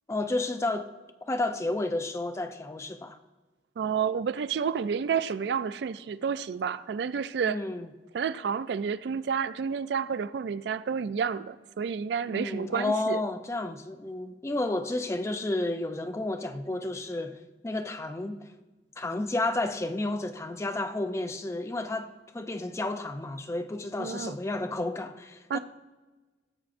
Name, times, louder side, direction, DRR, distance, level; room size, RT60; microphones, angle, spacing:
voice 1, 0.1-0.9 1.2-3.2 7.4-7.9 12.3-18.5 19.0-25.6, left 2 dB, 15° left, 0.4 m, -31 dB
voice 2, 3.8-7.6 8.1-13.2 24.0-24.4 25.5-25.6, right 6 dB, 60° right, 0.3 m, -30 dB
16.0 x 7.1 x 2.5 m
head